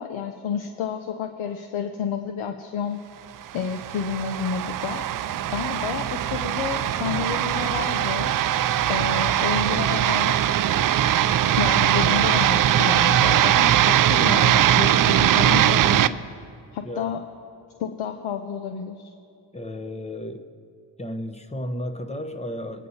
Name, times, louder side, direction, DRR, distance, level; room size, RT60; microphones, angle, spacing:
voice 1, 0.0-3.0 3.5-5.1 5.5-8.3 8.9-10.4 11.6-16.2 16.7-17.2 17.8-19.1, left 7 dB, 75° left, 6 dB, 0.8 m, -30 dB
sound 1, 3.5-16.1, right 11 dB, 45° right, 0.4 m, -21 dB
voice 2, 19.5-20.5 21.0-22.9, left 1 dB, 15° left, 7 dB, 0.8 m, -33 dB
23.0 x 9.1 x 2.8 m, 2.4 s
cardioid pair, 60°, 48 cm